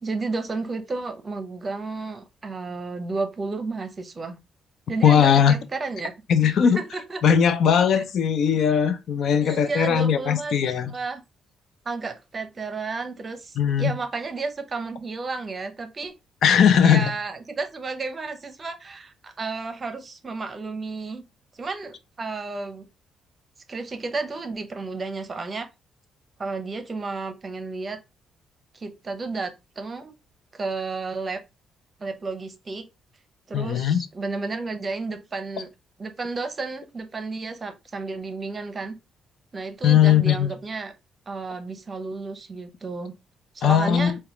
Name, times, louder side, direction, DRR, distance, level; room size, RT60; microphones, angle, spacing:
voice 1, 0.0-4.4 4.9-6.1 6.8-7.2 7.9-8.0 9.4-11.2 11.9-16.1 16.8-21.2 21.5-22.9 23.7-25.7 26.4-28.0 28.7-30.1 30.5-31.4 32.0-32.9 33.5-35.7 36.0-39.0 39.5-40.9 41.3-43.1 43.5-44.2, right 3 dB, 35° right, 0.7 m, -32 dB
voice 2, 5.0-5.5 6.3-6.8 7.2-10.9 13.6-13.9 16.4-17.1 33.5-34.0 39.8-40.5 43.6-44.1, left 8 dB, 70° left, 0.4 m, -19 dB
4.7 x 2.2 x 2.9 m
cardioid pair, 90°, 0 cm